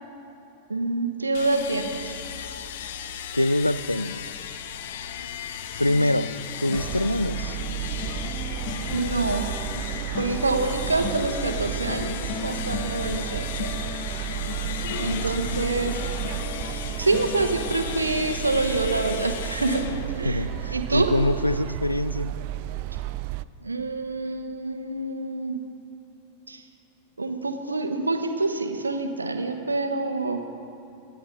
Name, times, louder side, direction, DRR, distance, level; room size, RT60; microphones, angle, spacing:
voice 1, 0.7-2.2 8.9-9.4 10.2-13.7 15.0-16.0 17.0-19.9 20.2-20.4 20.7-21.1 23.6-25.6 26.5-26.6 27.2-30.4, right 3 dB, 80° right, 6 dB, 1.1 m, -26 dB
sound 1, 1.3-20.8, left 9 dB, 55° left, 0.7 m, -36 dB
voice 2, 3.3-4.3 5.8-6.3 6.6-7.6 15.0-15.7 20.2-22.3, left 1 dB, 85° left, 15 dB, 0.4 m, -25 dB
sound 2, 5.8-21.0 21.4-21.6 21.9-22.1, left 5 dB, 40° left, 1.2 m, -38 dB
sound 3, 6.7-23.4, right 14 dB, 45° right, 0.3 m, -33 dB
25.0 x 10.0 x 3.8 m, 2.9 s
figure-of-eight pair, 90°, 0 cm